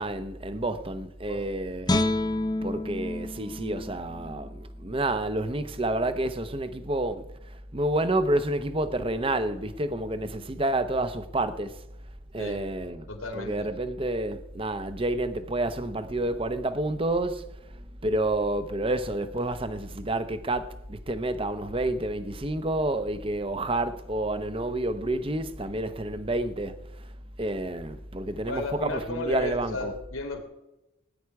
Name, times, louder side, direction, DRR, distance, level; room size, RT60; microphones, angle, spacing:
voice 1, 0.0-2.0 2.6-7.2 7.7-11.7 12.3-13.0 13.3-17.4 18.0-26.8 27.4-29.9, right 1 dB, 25° right, 0.8 m, -29 dB
Guitar, 1.9-5.0 5.4-5.6, left 1 dB, 20° left, 0.8 m, -30 dB
voice 2, 13.1-13.7 28.4-30.4, left 2 dB, 85° left, 3.0 m, -34 dB
19.0 x 10.0 x 4.7 m
head